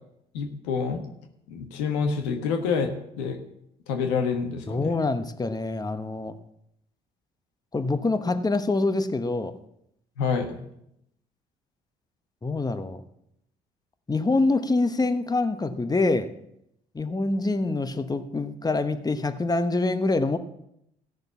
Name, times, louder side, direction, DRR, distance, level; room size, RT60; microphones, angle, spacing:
voice 1, 0.3-1.0 1.5-3.4 3.9-4.9 10.2-10.6, left 5 dB, 80° left, 5 dB, 1.3 m, -27 dB
voice 2, 4.7-6.3 7.7-9.5 12.4-13.0 14.1-16.3 16.9-20.4, left 3 dB, 20° left, 9 dB, 1.1 m, -25 dB
15.0 x 6.7 x 7.0 m, 0.78 s
hypercardioid pair, 50°, 21 cm